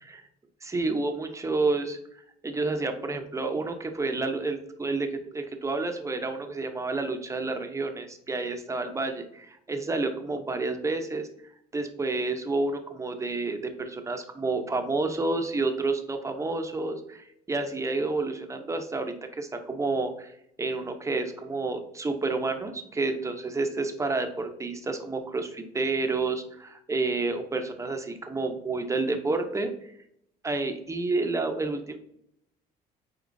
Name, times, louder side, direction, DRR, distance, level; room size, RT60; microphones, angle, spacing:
voice 1, 0.6-2.0 2.4-11.3 11.7-20.3 20.6-29.7 30.4-32.0, right 3 dB, 15° right, 5 dB, 0.8 m, -29 dB
8.1 x 4.3 x 2.7 m, 0.74 s
cardioid pair, 110°, 17 cm